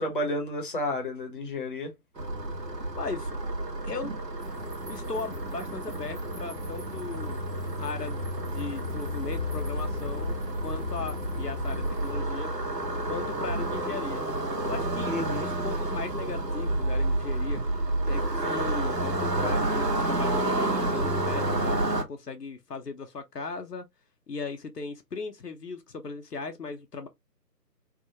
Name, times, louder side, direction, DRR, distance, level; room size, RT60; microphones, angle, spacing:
voice 1, 0.0-1.9 15.1-15.5, left 1 dB, 30° left, 0.8 m, -31 dB
sound 1, 2.2-22.0, right 2 dB, 75° right, 1.3 m, -30 dB
voice 2, 3.0-3.3 3.8-4.1 4.9-7.4 7.8-8.2 8.5-10.4 10.6-12.5 13.1-14.2 14.6-15.1 15.4-17.6 18.1-23.9 24.3-27.1, left 4 dB, 70° left, 0.8 m, -37 dB
sound 2, 4.4-12.1, left 3 dB, 30° right, 1.0 m, -36 dB
3.5 x 2.2 x 2.7 m
figure-of-eight pair, 150°, 49 cm